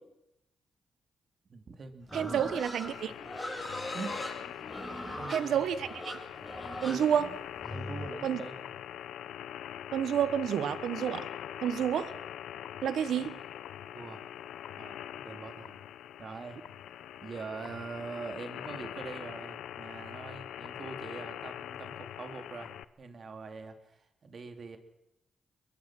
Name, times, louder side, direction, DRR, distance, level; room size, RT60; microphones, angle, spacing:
voice 1, 1.5-2.4 3.9-4.2 5.1-5.6 6.8-7.4 7.7-8.7 13.1-13.4 13.9-14.2 14.8-15.7 16.2-16.6 17.2-24.8, right 4 dB, 50° right, 7 dB, 3.2 m, -43 dB
Livestock farm animals working animals, 2.1-8.1, left 1 dB, 5° left, 7.5 m, -40 dB
voice 2, 2.1-3.1 5.3-6.2 6.8-7.3 8.2-8.4 9.9-11.3 11.6-12.2 12.8-13.4, right 9 dB, 80° right, 14 dB, 1.4 m, -29 dB
sound 1, 2.8-22.8, left 11 dB, 90° left, 0.7 m, -43 dB
23.5 x 22.0 x 6.3 m, 0.83 s
cardioid pair, 70°, 0 cm